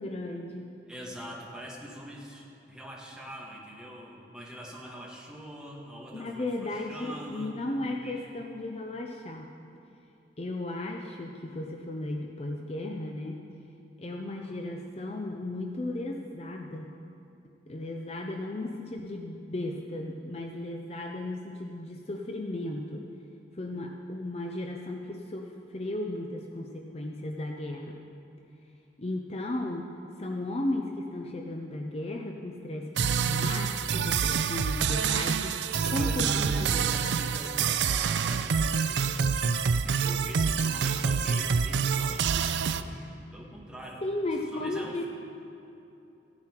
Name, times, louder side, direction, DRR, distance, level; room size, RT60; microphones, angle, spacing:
voice 1, 0.0-0.7 6.1-9.5 10.4-13.4 14.0-17.0 17.7-23.0 23.6-28.0 29.0-29.9 30.2-35.6 35.9-36.9 37.4-37.5 44.0-45.0, left 1 dB, 35° left, 2 dB, 0.6 m, -35 dB
voice 2, 0.9-8.3 14.2-14.6 35.7-44.0 44.4-45.0, equal, 5° right, -3 dB, 1.6 m, -43 dB
sound 1, 33.0-42.8, right 6 dB, 85° right, 0.4 m, -27 dB
15.0 x 9.6 x 4.5 m, 2.8 s
head